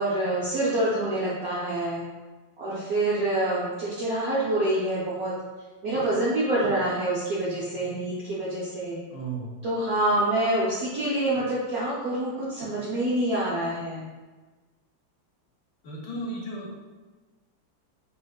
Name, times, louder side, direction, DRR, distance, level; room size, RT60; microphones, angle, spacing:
voice 1, 0.0-2.1 2.6-5.3 5.8-9.0 9.6-14.1, right 1 dB, 80° right, -8 dB, 0.8 m, -26 dB
voice 2, 9.1-9.6 15.8-16.8, right 2 dB, 65° left, -3 dB, 1.2 m, -34 dB
4.3 x 2.5 x 2.3 m, 1.3 s
omnidirectional pair, 2.3 m